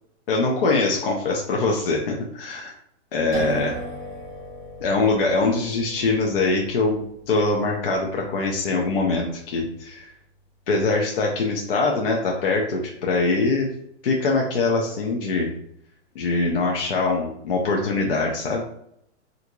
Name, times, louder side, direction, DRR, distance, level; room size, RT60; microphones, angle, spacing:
voice 1, 0.3-2.8 3.1-3.8 4.8-10.1 10.7-13.7 14.0-15.5 16.1-18.6, left 3 dB, 50° left, 0 dB, 0.6 m, -23 dB
sound 1, 3.3-10.9, equal, 5° left, 0.4 m, -39 dB
3.4 x 2.5 x 2.9 m, 0.73 s
hypercardioid pair, 180°, 35 cm